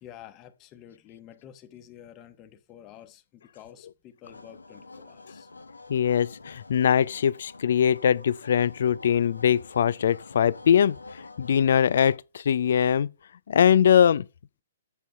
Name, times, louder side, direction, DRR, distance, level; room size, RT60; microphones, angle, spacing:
voice 1, 0.0-5.5, left 10 dB, 25° left, 1.2 m, -49 dB
sound 1, 4.2-12.2, left 3 dB, 80° left, 1.1 m, -47 dB
voice 2, 5.9-13.1 13.5-14.2, left 8 dB, 55° left, 0.4 m, -22 dB
8.2 x 7.7 x 5.4 m
figure-of-eight pair, 120°, 0 cm